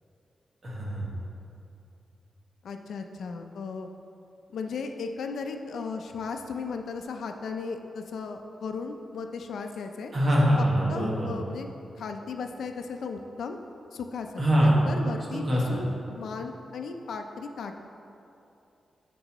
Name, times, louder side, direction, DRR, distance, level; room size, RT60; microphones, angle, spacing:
voice 1, 0.6-1.1 10.1-11.3 14.4-14.8 15.3-15.8, equal, 35° right, -5 dB, 1.5 m, -23 dB
voice 2, 2.6-3.9 4.5-10.1 10.6-11.7 12.0-13.6 13.9-17.8, left 5 dB, 80° left, 5 dB, 0.5 m, -36 dB
11.0 x 5.4 x 3.0 m, 2.8 s
wide cardioid pair, 175°, 0 cm